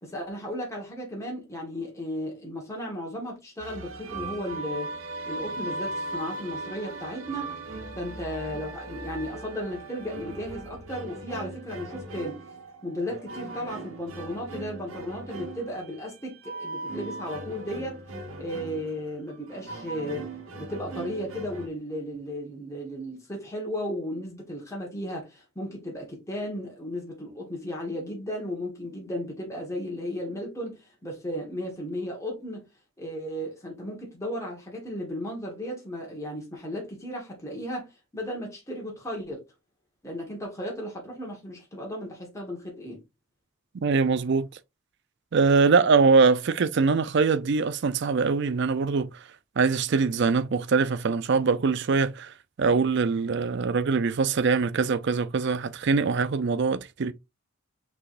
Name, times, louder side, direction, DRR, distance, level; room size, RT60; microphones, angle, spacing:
voice 1, 0.0-4.9 5.3-7.7 7.9-12.4 12.8-18.0 18.4-32.7 33.0-39.4 40.0-43.0, equal, 15° left, 1.4 m, -35 dB
sound 1, 3.6-21.7, right 2 dB, 75° right, 1.2 m, -38 dB
voice 2, 43.8-44.5 45.3-49.2 49.6-57.1, right 4 dB, 55° right, 0.4 m, -23 dB
5.9 x 3.4 x 2.5 m
head